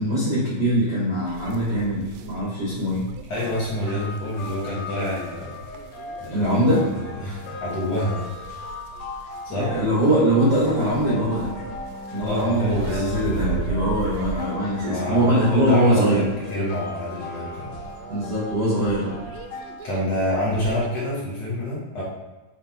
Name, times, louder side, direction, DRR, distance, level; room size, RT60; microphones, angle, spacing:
voice 1, 0.0-3.1 6.3-6.8 9.5-11.5 12.1-16.2 18.1-19.2, equal, 60° right, -7 dB, 1.0 m, -22 dB
sound 1, 1.3-20.9, right 7 dB, 90° right, 1.9 m, -38 dB
voice 2, 3.3-5.6 6.2-8.7 9.4-9.7 12.2-13.9 14.8-17.7 19.8-22.0, left 1 dB, 55° left, -7 dB, 2.0 m, -27 dB
sound 2, 3.4-19.8, left 3 dB, 80° left, 1.7 m, -38 dB
7.3 x 3.5 x 4.3 m, 1.2 s
omnidirectional pair, 4.3 m